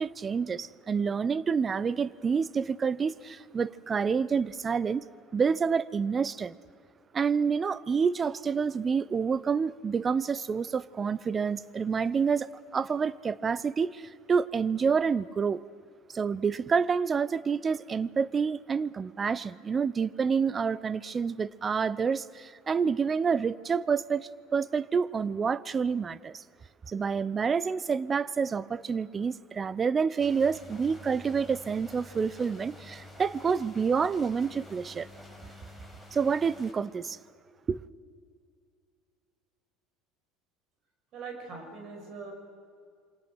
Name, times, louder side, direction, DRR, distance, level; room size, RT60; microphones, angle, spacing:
voice 1, 0.0-5.0 5.3-6.6 7.1-15.6 16.1-26.4 26.9-35.1 36.1-37.2 37.7-37.8, right 6 dB, 30° right, 0.7 m, -28 dB
sound 1, 30.2-36.7, equal, 15° right, 6.3 m, -49 dB
voice 2, 41.1-42.3, right 4 dB, 50° right, 5.9 m, -41 dB
27.5 x 24.5 x 6.3 m
figure-of-eight pair, 70°, 0 cm